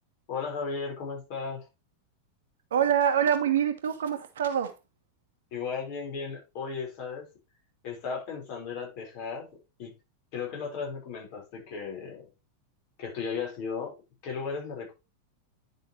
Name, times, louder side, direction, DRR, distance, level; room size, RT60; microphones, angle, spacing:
voice 1, 0.3-1.6 5.5-7.3 7.8-9.5 9.8-9.9 10.3-12.3 13.0-14.9, left 5 dB, 45° left, 4.7 m, -35 dB
voice 2, 2.7-4.8, right 9 dB, 60° right, 1.4 m, -25 dB
10.5 x 5.6 x 3.2 m
figure-of-eight pair, 90°, 0 cm